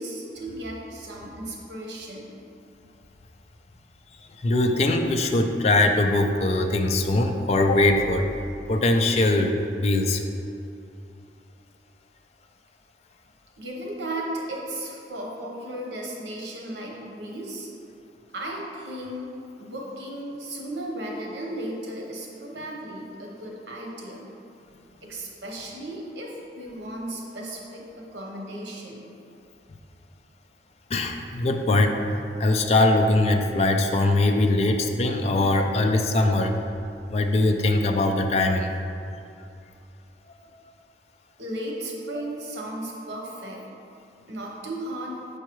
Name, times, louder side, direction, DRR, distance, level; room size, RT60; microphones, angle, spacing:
voice 1, 0.0-2.4 13.6-17.7 18.3-19.3 19.6-24.3 25.0-29.1 41.4-43.7 44.3-45.2, right 1 dB, 80° right, -2 dB, 1.0 m, -35 dB
voice 2, 4.4-8.3 8.7-10.2 30.9-32.0 32.4-36.6 37.1-38.7, left 2 dB, 35° left, 4 dB, 0.4 m, -21 dB
6.6 x 4.6 x 3.1 m, 2.7 s
head